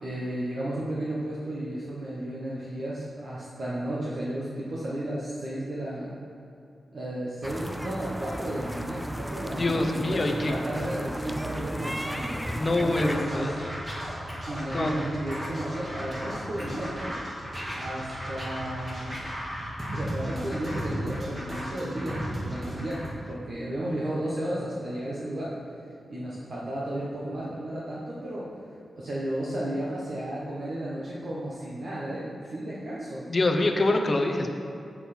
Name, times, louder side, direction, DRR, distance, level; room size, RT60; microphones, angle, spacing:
voice 1, 0.0-6.2 6.9-13.7 14.5-17.2 17.7-19.2 19.9-25.6 26.1-28.5 29.0-33.3, right 1 dB, 55° right, -7 dB, 1.2 m, -33 dB
sound 1, 7.4-13.2, equal, ahead, 0.3 m, -35 dB
voice 2, 9.6-10.5 12.5-13.7 14.7-14.9 33.3-34.5, left 2 dB, 35° left, 4 dB, 0.7 m, -25 dB
Scratching (performance technique), 12.8-23.1, equal, 25° right, 1.9 m, -35 dB
7.6 x 7.3 x 4.4 m, 2.6 s
wide cardioid pair, 125°, 0 cm